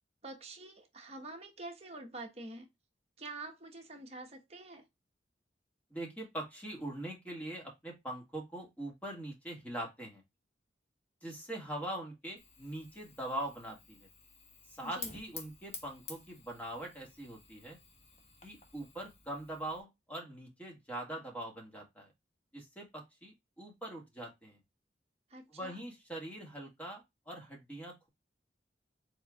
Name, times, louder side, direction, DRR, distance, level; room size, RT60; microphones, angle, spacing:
voice 1, 0.2-2.7 3.2-4.8 14.8-15.1 25.3-25.8, right 2 dB, 35° right, 1.3 m, -46 dB
voice 2, 5.9-10.2 11.2-14.1 14.8-17.8 18.4-22.1 22.5-24.6 25.5-28.1, right 1 dB, 10° left, 1.9 m, -42 dB
Fire, 12.4-19.8, left 4 dB, 35° left, 1.2 m, -51 dB
4.5 x 4.3 x 2.4 m
head